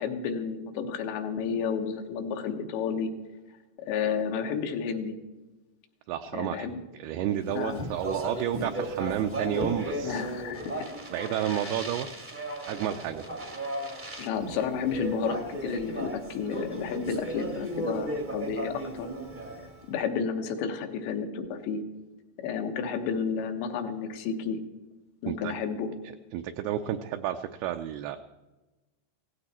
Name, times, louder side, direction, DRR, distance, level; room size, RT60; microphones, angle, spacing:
voice 1, 0.0-3.1 3.8-5.1 6.3-6.8 7.5-7.8 10.0-10.8 11.4-11.7 14.2-19.1 19.9-21.8 22.4-24.6 25.2-25.9, left 6 dB, 80° left, 5 dB, 3.4 m, -31 dB
voice 2, 6.1-6.7 6.9-10.3 11.1-12.1 12.7-13.2 14.5-14.6 25.3-25.5 26.3-28.2, right 10 dB, 80° right, 6 dB, 2.3 m, -31 dB
Speech, 7.5-19.9, right 1 dB, 50° right, 0.5 m, -36 dB
17.0 x 15.5 x 4.2 m, 1.1 s
omnidirectional pair, 5.0 m